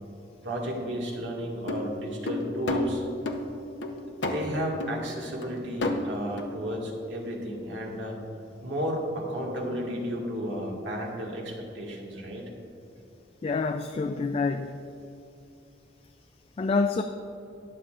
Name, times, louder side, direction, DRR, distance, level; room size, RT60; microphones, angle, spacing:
voice 1, 0.4-3.0 4.2-8.2 8.6-12.5, equal, 90° right, -2 dB, 1.8 m, -33 dB
sound 1, 1.7-3.4 3.8-4.5 4.8-5.0 5.4-5.5 5.8-6.0 6.4-6.5, left 1 dB, 90° left, 0.8 m, -30 dB
voice 2, 13.4-14.8 16.6-17.0, left 4 dB, 35° left, 7 dB, 0.3 m, -27 dB
20.5 x 7.0 x 2.5 m, 2.8 s
head